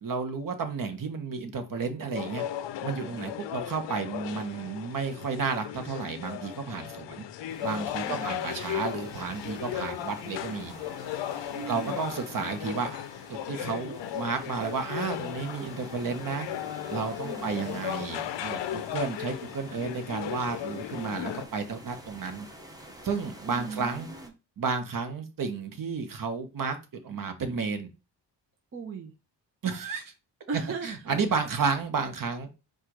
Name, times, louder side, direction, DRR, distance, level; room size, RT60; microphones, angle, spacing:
voice 1, 0.0-2.4 2.8-7.2 7.6-10.7 11.7-16.5 16.9-22.5 23.0-24.1 24.6-26.8 27.0-27.9 29.6-30.1 30.8-32.5, right 5 dB, 45° right, 7 dB, 1.0 m, -32 dB
sound 1, 2.1-21.4, left 11 dB, 70° left, 0.6 m, -36 dB
sound 2, 7.5-24.3, right 1 dB, 10° right, 0.8 m, -48 dB
voice 2, 8.0-8.5 11.5-12.0 17.2-17.8 23.5-24.3 28.7-29.1 30.5-31.0, right 5 dB, 30° right, 3 dB, 0.6 m, -38 dB
4.4 x 2.4 x 4.6 m, 0.29 s
cardioid pair, 115°, 44 cm